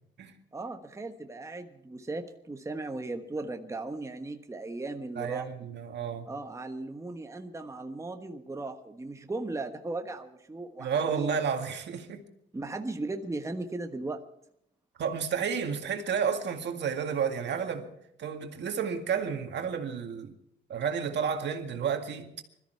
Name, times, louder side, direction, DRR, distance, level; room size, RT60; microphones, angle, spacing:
voice 1, 0.5-5.5 6.3-11.4 12.5-14.2, right 2 dB, 15° right, 1.3 m, -37 dB
voice 2, 5.2-6.3 10.8-12.2 15.0-17.9 18.2-20.3 20.7-22.3, right 7 dB, 65° right, 2.0 m, -31 dB
21.0 x 13.5 x 4.7 m
cardioid pair, 90°, 20 cm